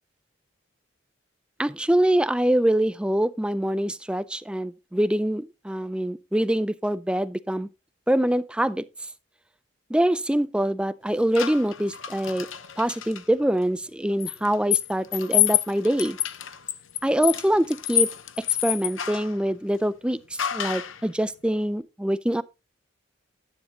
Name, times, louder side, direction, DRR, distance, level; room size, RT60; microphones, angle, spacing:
voice 1, 1.6-7.7 8.1-8.8 9.9-12.5 12.8-16.2 17.0-18.1 18.6-20.2 20.5-22.4, right 1 dB, 5° right, 0.4 m, -24 dB
sound 1, 11.4-13.2 14.2-19.4 20.4-21.0, left 13 dB, 80° left, 0.9 m, -27 dB
11.5 x 9.4 x 2.9 m
head